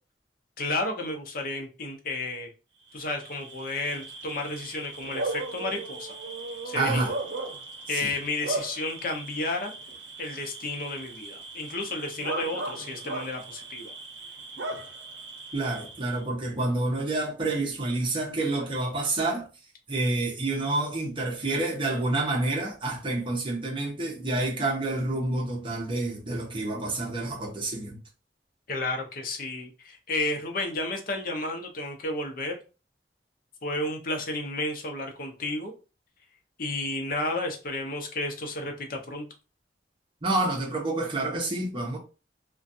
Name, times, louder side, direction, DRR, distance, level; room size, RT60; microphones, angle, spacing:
voice 1, 0.6-2.5 2.9-6.1 6.6-7.2 7.9-9.7 10.2-13.9 28.7-32.6 33.6-35.7 36.6-39.3, left 2 dB, 55° left, 0.6 m, -32 dB
Bark / Cricket, 2.9-16.2, right 2 dB, 85° right, 0.6 m, -37 dB
voice 2, 6.7-7.1 7.9-8.1 15.5-19.4 19.9-28.0 40.2-42.0, right 2 dB, 30° right, 0.7 m, -28 dB
2.4 x 2.2 x 2.6 m
head